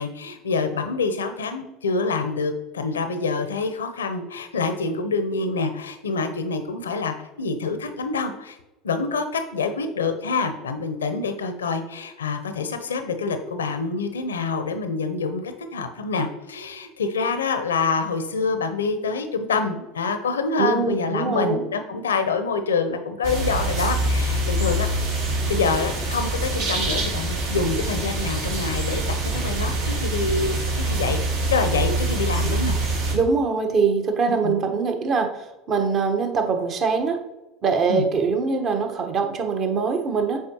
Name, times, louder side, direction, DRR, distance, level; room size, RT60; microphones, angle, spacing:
voice 1, 0.0-8.6 8.8-24.9 25.2-29.0 29.3-31.2 31.5-32.8 34.4-34.5 37.9-38.0, left 4 dB, 85° left, 8 dB, 0.6 m, -26 dB
voice 2, 20.6-21.6 33.1-37.2 37.6-40.4, right 5 dB, 45° right, 4 dB, 1.1 m, -23 dB
sound 1, 23.2-33.1, right 2 dB, 70° right, 1.8 m, -25 dB
7.2 x 4.6 x 2.9 m, 1.0 s
hypercardioid pair, 80°, 0 cm